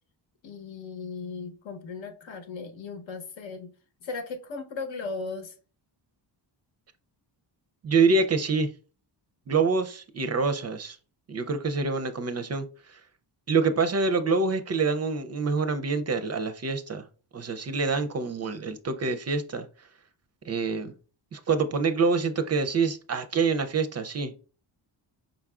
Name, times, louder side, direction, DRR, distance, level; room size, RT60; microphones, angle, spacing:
voice 1, 0.4-3.7 4.0-5.6, left 4 dB, 75° left, 1.0 m, -37 dB
voice 2, 7.8-8.7 9.5-11.0 11.3-13.0 13.5-17.1 17.3-19.7 20.4-20.9 21.3-24.3, right 4 dB, 35° right, 0.4 m, -26 dB
5.3 x 3.6 x 2.3 m
cardioid pair, 105°, 46 cm